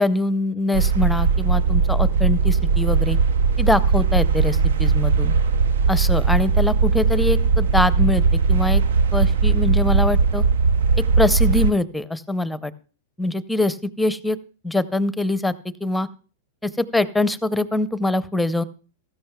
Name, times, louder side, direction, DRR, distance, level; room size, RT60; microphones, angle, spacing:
voice 1, 0.0-3.2 3.6-5.3 5.9-8.2 8.5-8.8 9.1-10.4 11.2-12.7 13.2-14.4 14.6-15.5 15.8-16.1 16.6-18.6, left 2 dB, 5° left, 15 dB, 0.6 m, -23 dB
sound 1, 0.7-11.7, right 5 dB, 80° right, 0.4 m, -19 dB
16.0 x 13.5 x 2.2 m, 0.37 s
hypercardioid pair, 115°, 0 cm